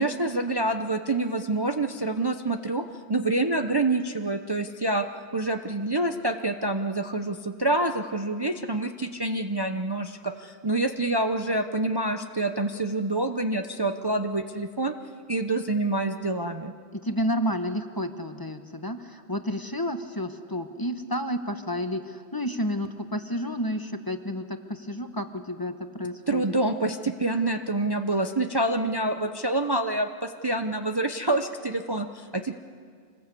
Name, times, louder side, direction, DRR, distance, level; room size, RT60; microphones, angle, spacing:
voice 1, 0.0-2.8 3.1-5.1 5.3-14.9 15.3-16.7 26.3-32.6, right 2 dB, 25° right, 6 dB, 0.7 m, -27 dB
voice 2, 16.9-26.4, equal, 20° left, 7 dB, 1.1 m, -31 dB
26.5 x 19.5 x 8.4 m, 2.1 s
omnidirectional pair, 1.1 m